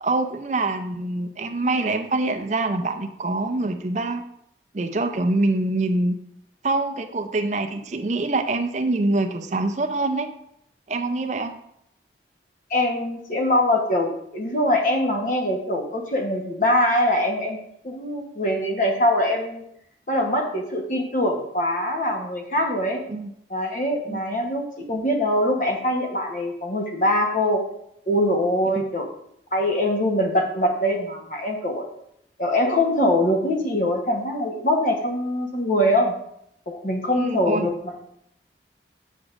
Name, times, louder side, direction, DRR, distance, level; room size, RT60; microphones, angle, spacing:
voice 1, 0.0-4.2 4.7-6.2 6.6-10.3 10.9-11.5 23.1-23.3 24.1-24.2 28.8-28.9 37.1-37.7, right 2 dB, 40° right, 7 dB, 0.5 m, -25 dB
voice 2, 12.7-17.6 17.8-19.6 20.1-23.0 23.5-27.6 28.1-29.1 29.5-31.9 32.4-36.1 36.7-37.9, left 1 dB, 45° left, 2 dB, 1.0 m, -23 dB
8.0 x 5.9 x 2.5 m, 0.74 s
head